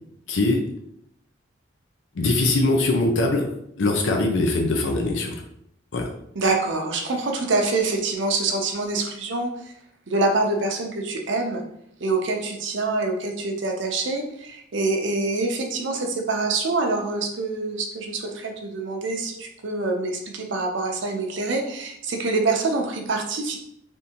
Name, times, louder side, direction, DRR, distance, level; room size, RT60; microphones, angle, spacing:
voice 1, 0.3-0.6 2.1-3.5 3.8-5.3 5.9-6.1, left 2 dB, 70° left, 2 dB, 0.5 m, -21 dB
voice 2, 6.4-9.7 10.1-11.6 12.0-23.6, right 3 dB, 65° right, 3 dB, 0.5 m, -25 dB
3.5 x 2.6 x 2.8 m, 0.74 s
head